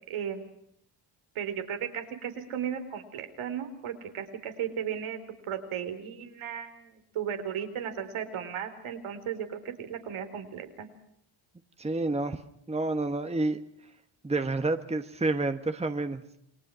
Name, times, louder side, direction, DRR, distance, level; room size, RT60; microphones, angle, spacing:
voice 1, 0.1-0.4 1.3-5.2 5.5-10.9, right 8 dB, 80° right, 7 dB, 3.9 m, -35 dB
voice 2, 11.8-12.4 12.7-13.6 14.2-16.2, right 2 dB, 15° right, 9 dB, 1.3 m, -29 dB
29.0 x 20.5 x 6.2 m, 0.71 s
cardioid pair, 95°, 49 cm